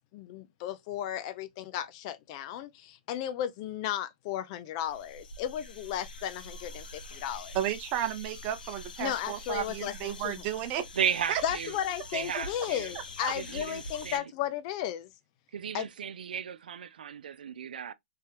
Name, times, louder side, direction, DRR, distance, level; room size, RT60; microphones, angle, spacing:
voice 1, 0.1-7.6 9.0-10.3 11.4-15.1 15.7-15.9, left 11 dB, 40° left, 0.5 m, -35 dB
sound 1, 4.8-14.2, left 2 dB, 90° left, 0.8 m, -45 dB
voice 2, 7.5-10.8 11.3-11.4 13.2-13.3, right 11 dB, 35° right, 0.7 m, -33 dB
voice 3, 10.9-11.7 12.1-12.9 13.3-14.2 15.5-17.9, right 8 dB, 80° right, 0.5 m, -34 dB
3.4 x 2.8 x 3.3 m
hypercardioid pair, 140°, 5 cm